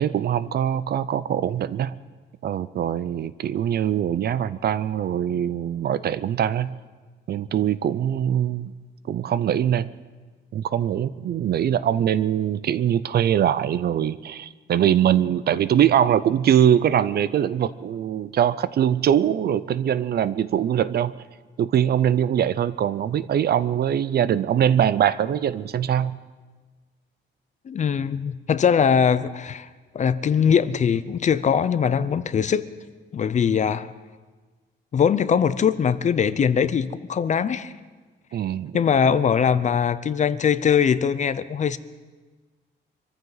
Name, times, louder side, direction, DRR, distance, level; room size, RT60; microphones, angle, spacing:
voice 1, 0.0-2.0 2.4-6.8 7.3-8.7 9.1-9.9 10.5-21.1 21.6-26.2 38.3-38.8, right 10 dB, 50° right, 16 dB, 0.5 m, -22 dB
voice 2, 27.7-29.7 29.9-32.7 33.1-33.9 34.9-37.7 38.7-41.8, left 7 dB, 35° left, 15 dB, 0.5 m, -21 dB
25.5 x 14.5 x 4.0 m, 1.4 s
cardioid pair, 150°, 20 cm